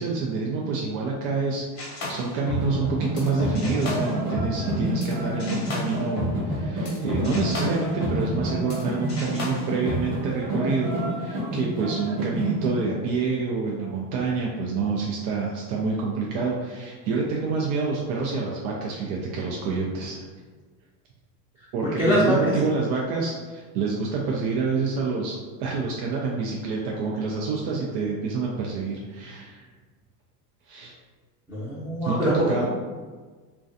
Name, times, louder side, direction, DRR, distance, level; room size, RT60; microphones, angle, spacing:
voice 1, 0.0-20.3 21.7-29.6 30.7-30.9 32.0-32.6, right 4 dB, 85° right, -2 dB, 0.6 m, -27 dB
sound 1, 1.8-5.1 5.4-8.8 9.1-10.1, left 1 dB, 35° left, 0.7 m, -32 dB
sound 2, 2.6-12.7, right 1 dB, 65° right, 1.2 m, -29 dB
voice 2, 22.0-22.4 31.5-32.3, equal, 5° right, -13 dB, 0.5 m, -23 dB
2.4 x 2.2 x 2.5 m, 1.4 s
supercardioid pair, 135°, 47 cm